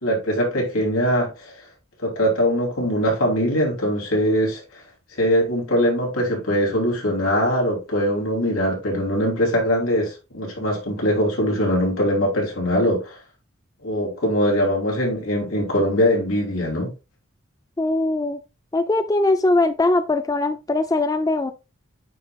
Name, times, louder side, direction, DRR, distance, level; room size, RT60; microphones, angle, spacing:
voice 1, 0.0-1.5 2.0-4.8 5.1-13.2 13.8-16.9, equal, 75° left, 3.1 m, -22 dB
voice 2, 17.8-18.4 18.7-21.5, left 2 dB, 15° left, 0.3 m, -21 dB
9.3 x 5.2 x 2.3 m
head